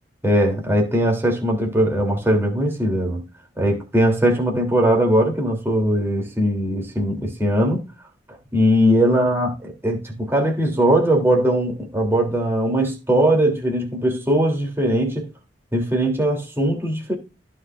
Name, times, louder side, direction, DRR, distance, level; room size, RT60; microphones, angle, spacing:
voice 1, 0.2-3.2 3.6-7.8 8.5-9.5 9.8-15.3 15.7-17.1, right 1 dB, 15° right, 3.5 m, -20 dB
16.5 x 6.0 x 2.7 m
head